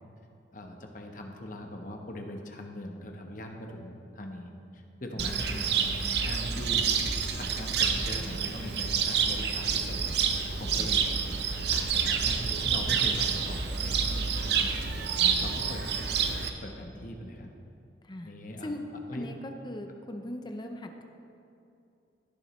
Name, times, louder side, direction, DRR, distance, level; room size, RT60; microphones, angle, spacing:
voice 1, 0.5-5.8 6.2-7.0 7.3-10.0 10.4-11.1 11.7-14.8 15.2-15.8 16.6-17.5 18.2-18.7 19.1-19.2, left 1 dB, 45° left, 3 dB, 1.0 m, -41 dB
voice 2, 5.2-5.6 10.7-10.9 15.2-15.8 18.0-18.3 18.6-18.8 19.1-21.0, left 1 dB, 25° left, 5 dB, 0.6 m, -40 dB
Cricket, 5.2-16.5, right 6 dB, 65° right, 0.7 m, -28 dB
17.0 x 7.1 x 3.2 m, 2.7 s
head